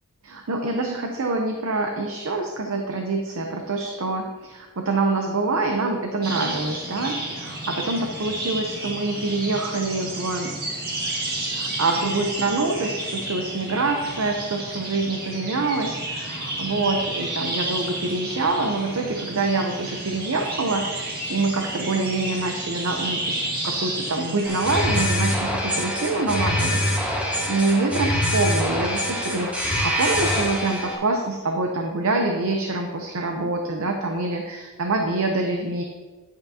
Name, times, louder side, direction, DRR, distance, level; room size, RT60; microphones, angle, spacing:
voice 1, 0.2-10.5 11.5-35.8, right 3 dB, 70° right, 3 dB, 0.7 m, -26 dB
sound 1, 6.2-25.0, right 1 dB, 45° right, 1.7 m, -31 dB
sound 2, 24.4-31.0, equal, 5° right, 1.5 m, -24 dB
10.5 x 8.0 x 2.8 m, 1.3 s
head